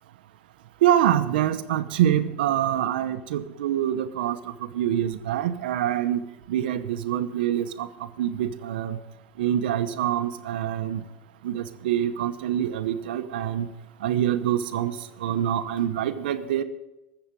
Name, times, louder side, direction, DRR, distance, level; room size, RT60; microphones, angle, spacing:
voice 1, 0.8-4.4 4.7-6.2 6.5-7.9 8.2-9.0 9.4-11.0 11.4-13.7 14.0-14.9 15.2-16.6, right 11 dB, 85° right, 9 dB, 0.9 m, -25 dB
14.5 x 7.1 x 8.9 m, 0.96 s
supercardioid pair, 140°, 5 cm